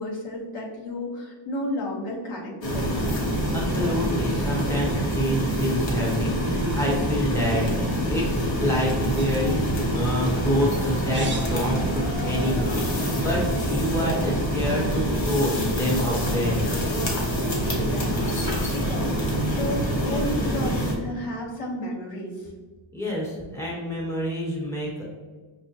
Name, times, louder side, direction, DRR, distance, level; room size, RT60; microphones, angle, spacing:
voice 1, 0.0-2.9 17.6-22.5, left 1 dB, 85° left, -4 dB, 1.2 m, -32 dB
sound 1, 2.6-20.9, equal, 65° left, 1.0 m, -26 dB
voice 2, 3.5-16.6 22.9-25.0, equal, 5° left, -4 dB, 1.0 m, -27 dB
sound 2, 9.2-13.7, right 3 dB, 25° right, 0.5 m, -44 dB
6.0 x 2.1 x 2.8 m, 1.3 s
wide cardioid pair, 130°, 50 cm